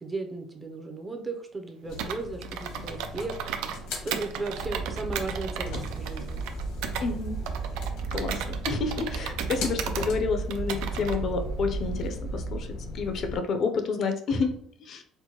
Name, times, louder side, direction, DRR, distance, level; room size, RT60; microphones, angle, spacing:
voice 1, 0.0-6.4, right 3 dB, 20° right, 4 dB, 0.5 m, -36 dB
sound 1, 1.8-13.4, left 1 dB, 80° left, 0.9 m, -38 dB
Computer keyboard, 2.0-3.8 4.1-7.1 7.5-10.1 10.5-11.2, right 8 dB, 85° right, 0.4 m, -35 dB
sound 2, 4.6-12.6, right 6 dB, 50° right, 0.8 m, -36 dB
voice 2, 7.0-7.4 8.1-14.5 14.8-15.0, left 4 dB, 45° left, 6 dB, 0.4 m, -29 dB
4.4 x 2.1 x 2.8 m, 0.63 s
cardioid pair, 140°, 0 cm